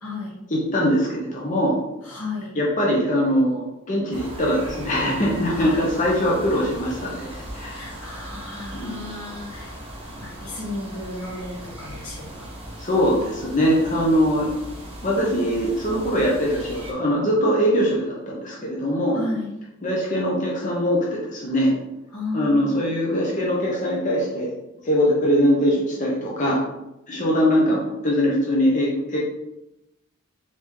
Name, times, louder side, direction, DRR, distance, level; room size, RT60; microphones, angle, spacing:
voice 1, 0.0-0.4 2.0-2.6 5.5-5.8 7.7-9.8 10.2-12.9 19.1-19.5 22.1-22.7 27.2-27.3, left 2 dB, 85° left, -3 dB, 1.5 m, -34 dB
voice 2, 0.5-1.7 2.6-7.3 7.5-7.8 8.7-9.0 12.8-14.5 15.0-19.2 19.8-21.7 22.3-24.5 24.8-26.6 27.1-29.2, equal, 35° left, -3 dB, 0.8 m, -22 dB
sound 1, 4.1-16.9, right 1 dB, 25° right, 0.9 m, -38 dB
4.2 x 3.9 x 3.1 m, 0.90 s
head